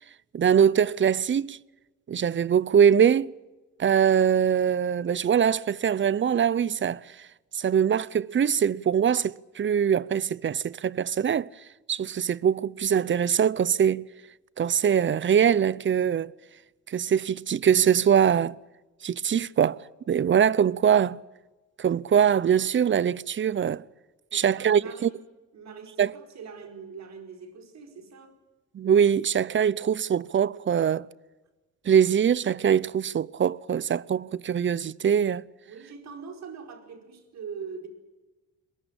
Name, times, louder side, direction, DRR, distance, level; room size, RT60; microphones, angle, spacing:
voice 1, 0.3-1.6 2.1-3.3 3.8-7.0 7.5-11.5 11.9-14.0 14.6-16.3 16.9-18.6 19.0-19.8 20.1-21.2 21.8-23.8 24.3-25.1 26.0-26.1 28.7-31.1 31.9-35.4, right 8 dB, 40° right, 0.7 m, -22 dB
voice 2, 24.3-25.1 25.5-28.4 35.7-37.9, right 5 dB, 60° right, 4.8 m, -42 dB
22.5 x 21.5 x 8.8 m
cardioid pair, 90°, 30 cm